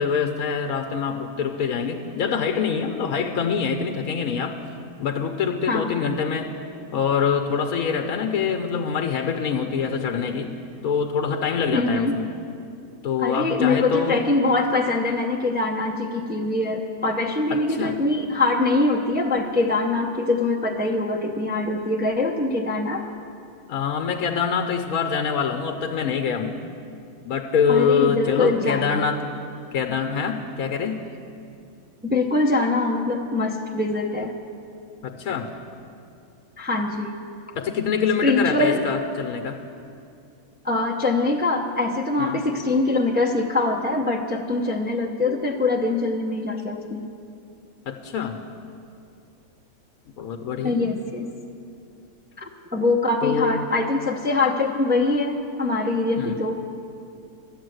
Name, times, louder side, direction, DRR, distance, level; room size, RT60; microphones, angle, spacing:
voice 1, 0.0-4.6 5.0-6.5 6.9-10.5 10.8-12.3 13.0-14.2 17.5-18.0 23.7-26.6 27.2-29.2 29.7-31.0 35.0-35.5 37.5-39.6 42.2-42.4 47.9-48.4 50.2-50.7 53.2-53.6 56.2-56.4, left 6 dB, 75° left, 5 dB, 1.2 m, -25 dB
voice 2, 5.7-6.0 11.7-12.2 13.2-23.0 27.7-29.1 32.0-34.3 36.6-37.2 38.2-38.8 40.6-47.1 50.6-51.3 52.4-56.6, left 2 dB, 15° right, 0 dB, 0.3 m, -23 dB
12.0 x 8.8 x 7.8 m, 2.5 s
omnidirectional pair, 1.5 m